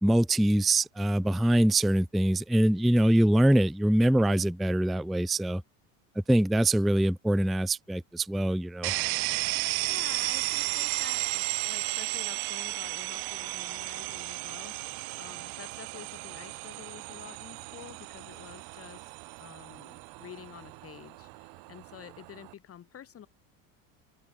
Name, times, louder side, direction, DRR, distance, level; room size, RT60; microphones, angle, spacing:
voice 1, 0.0-5.6 6.3-8.9, right 1 dB, ahead, 0.3 m, -24 dB
sound 1, 8.8-22.5, right 35 dB, 65° right, 0.6 m, -34 dB
voice 2, 9.8-19.1 19.4-23.3, left 9 dB, 35° left, 2.7 m, -48 dB
open air
supercardioid pair, 105°, 39 cm